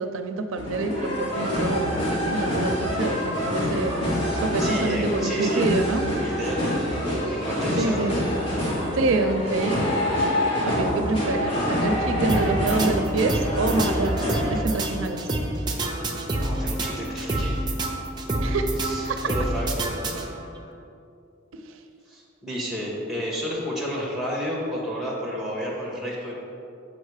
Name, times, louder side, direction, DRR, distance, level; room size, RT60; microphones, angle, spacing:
voice 1, 0.0-3.9 4.4-6.0 7.8-8.2 8.9-9.8 10.6-14.1 14.5-15.2 18.4-18.7 19.1-19.3, right 3 dB, 85° right, 7 dB, 0.5 m, -26 dB
sound 1, 0.6-14.6, left 1 dB, 30° left, 1.6 m, -26 dB
voice 2, 4.3-5.7 6.2-6.9 7.3-8.1 16.3-17.6 18.8-19.7 22.1-26.3, equal, ahead, -3 dB, 1.5 m, -31 dB
sound 2, 12.3-20.6, right 1 dB, 20° right, 0.6 m, -28 dB
6.4 x 5.1 x 4.8 m, 2.6 s
head